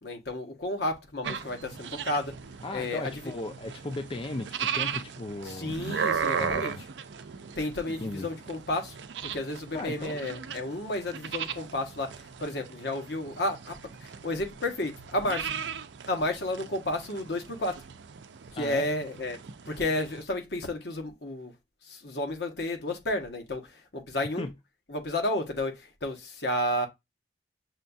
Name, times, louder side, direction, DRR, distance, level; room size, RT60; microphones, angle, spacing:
voice 1, 0.0-2.3 2.7-3.3 5.4-6.7 7.6-9.0 9.2-13.7 14.0-15.5 16.1-17.8 18.5-19.4 19.7-21.5 21.9-24.5 24.9-26.9, left 1 dB, 65° left, 1.1 m, -32 dB
sound 1, 1.2-20.2, right 7 dB, 80° right, 0.5 m, -37 dB
voice 2, 2.6-5.8 6.3-6.8 8.0-8.3 9.7-10.2 18.6-18.9 24.4-24.5, left 2 dB, 30° left, 0.4 m, -36 dB
6.3 x 2.3 x 2.6 m
head